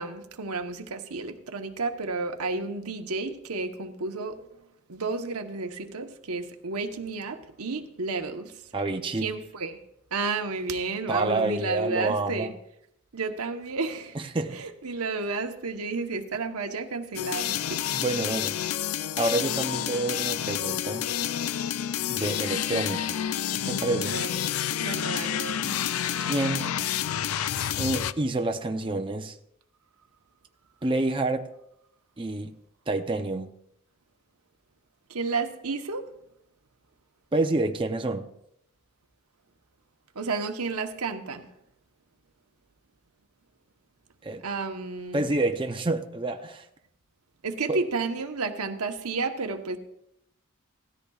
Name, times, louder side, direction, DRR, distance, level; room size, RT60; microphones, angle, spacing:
voice 1, 0.0-4.4 4.9-8.6 9.2-9.8 10.1-12.5 13.1-14.2 14.5-17.8 24.0-24.4 24.8-25.8 35.1-36.0 40.1-41.5 44.4-45.2 47.4-49.8, right 3 dB, 90° right, 1.1 m, -31 dB
voice 2, 8.7-9.3 11.1-12.5 14.1-14.7 17.9-18.6 19.2-21.1 22.1-23.2 23.7-24.2 26.3-26.7 27.8-29.4 30.8-31.5 32.2-32.6 32.9-33.5 37.3-38.3 44.2-44.4 45.1-46.7 47.7-47.8, right 2 dB, 25° right, 0.6 m, -28 dB
sound 1, 17.1-28.1, left 10 dB, 75° left, 0.4 m, -29 dB
17.5 x 13.5 x 2.4 m
head